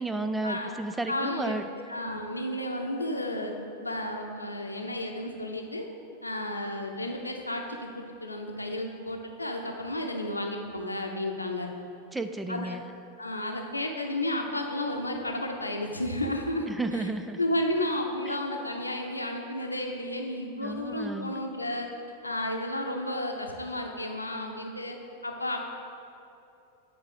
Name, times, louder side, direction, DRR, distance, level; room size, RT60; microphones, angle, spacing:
voice 1, 0.0-1.7 12.1-12.8 16.7-17.4 18.3-18.4 20.6-21.4, right 2 dB, 10° right, 9 dB, 0.3 m, -32 dB
voice 2, 1.1-1.6 1.9-3.5 3.8-5.9 6.2-11.7 12.5-12.8 13.2-16.7 16.9-17.1 17.4-21.9 22.2-25.0 25.2-25.6, left 1 dB, 85° left, 3 dB, 0.8 m, -32 dB
8.6 x 4.0 x 6.7 m, 2.7 s
figure-of-eight pair, 90°, 0 cm